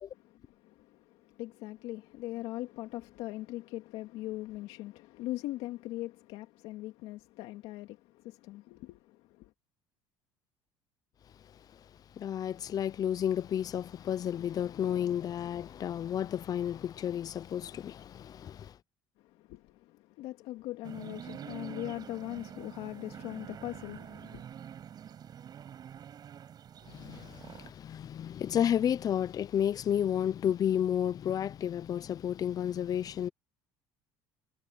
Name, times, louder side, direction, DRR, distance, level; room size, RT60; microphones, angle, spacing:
voice 1, 0.1-9.5 19.2-24.4, left 17 dB, 75° left, 2.2 m, -41 dB
voice 2, 11.4-18.8 26.9-33.3, left 9 dB, 40° left, 0.7 m, -32 dB
sound 1, 20.8-27.7, right 9 dB, 45° right, 7.8 m, -46 dB
supercardioid pair, 110°, 10 cm